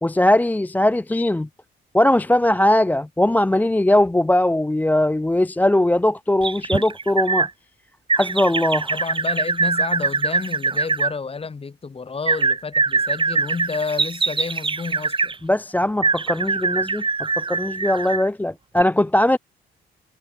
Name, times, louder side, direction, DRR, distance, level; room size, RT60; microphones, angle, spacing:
voice 1, 0.0-1.5 1.9-7.5 8.2-8.9 15.4-17.0 17.5-19.4, left 1 dB, 10° left, 0.5 m, -19 dB
sound 1, 6.4-7.5 8.1-11.1 12.3-15.4 16.0-18.3 18.8-18.9, right 4 dB, 25° right, 1.4 m, -23 dB
voice 2, 8.9-15.3, left 4 dB, 30° left, 1.7 m, -30 dB
cardioid pair, 90°, 20 cm